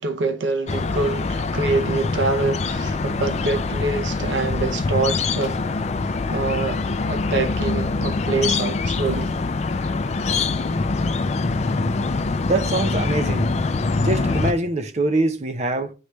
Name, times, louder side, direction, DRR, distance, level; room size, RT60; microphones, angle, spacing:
voice 1, 0.0-5.6 6.0-9.3, right 3 dB, 80° right, 0.7 m, -25 dB
sound 1, 0.7-14.5, left 3 dB, 35° left, 0.4 m, -24 dB
sound 2, 6.3-12.1, left 2 dB, 70° left, 0.8 m, -38 dB
voice 2, 12.4-13.5 14.0-15.9, right 2 dB, 35° right, 0.6 m, -23 dB
9.5 x 3.2 x 3.1 m
head